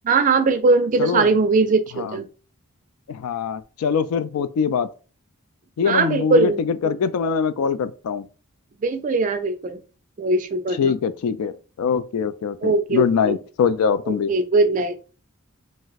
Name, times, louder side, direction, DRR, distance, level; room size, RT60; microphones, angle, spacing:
voice 1, 0.0-2.2 5.9-6.9 8.8-9.8 10.2-10.9 12.6-13.4 14.3-15.0, right 3 dB, 35° right, 0.3 m, -20 dB
voice 2, 1.0-1.3 1.9-2.2 3.1-4.9 5.8-8.3 10.8-14.3, left 6 dB, 80° left, 0.3 m, -23 dB
2.4 x 2.0 x 3.9 m
head